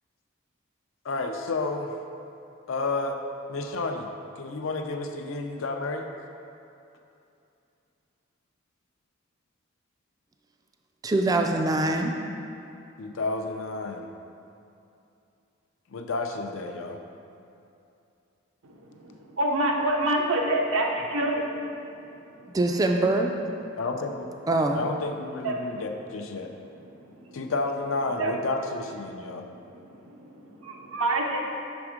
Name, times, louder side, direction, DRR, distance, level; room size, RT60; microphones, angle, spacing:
voice 1, 1.0-1.9 2.7-3.2 3.5-4.1 4.4-6.1 13.0-14.1 15.9-17.0 23.8-24.3 24.7-26.5 27.3-29.4, left 3 dB, 70° left, 4 dB, 0.5 m, -31 dB
voice 2, 11.0-12.1 22.5-23.3 24.5-24.8, right 2 dB, 20° right, 4 dB, 0.3 m, -23 dB
voice 3, 19.0-21.5 22.4-22.5 25.4-25.8 26.9-27.0 28.2-28.3 29.7-31.4, right 1 dB, 80° right, 0 dB, 0.7 m, -27 dB
6.0 x 3.5 x 4.9 m, 2.7 s
head